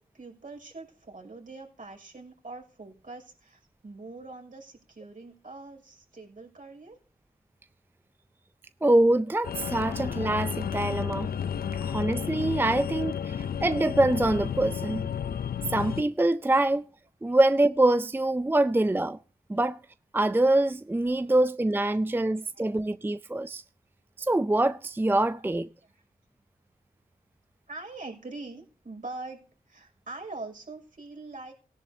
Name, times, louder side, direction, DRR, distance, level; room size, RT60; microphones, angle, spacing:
voice 1, 0.0-7.0 17.3-17.4 21.3-21.4 22.1-22.2 22.5-22.7 25.3-25.4 25.8-26.0 27.7-31.5, right 3 dB, 60° right, 6.1 m, -43 dB
voice 2, 8.8-11.3 11.8-15.1 15.7-16.8 17.2-19.2 19.5-19.8 20.1-23.6 24.2-25.7, right 2 dB, 15° right, 0.4 m, -24 dB
sound 1, 9.4-16.0, left 8 dB, 75° left, 0.6 m, -32 dB
18.0 x 11.0 x 2.8 m
cardioid pair, 55°, 16 cm